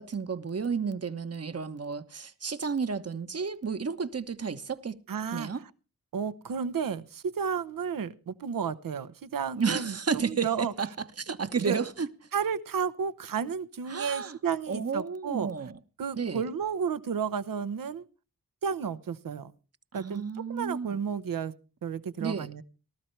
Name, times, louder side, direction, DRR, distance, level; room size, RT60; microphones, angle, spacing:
voice 1, 0.0-5.0 5.3-5.6 9.5-12.1 13.9-14.4 14.7-15.8 16.1-16.4 19.9-21.0 22.2-22.5, right 5 dB, 45° right, 1.2 m, -32 dB
voice 2, 5.1-5.5 6.1-10.7 11.6-11.8 12.3-15.5 16.0-18.0 18.6-19.5 19.9-21.5 21.8-22.6, right 6 dB, 75° right, 1.0 m, -32 dB
19.0 x 12.5 x 3.3 m
cardioid pair, 45°, 34 cm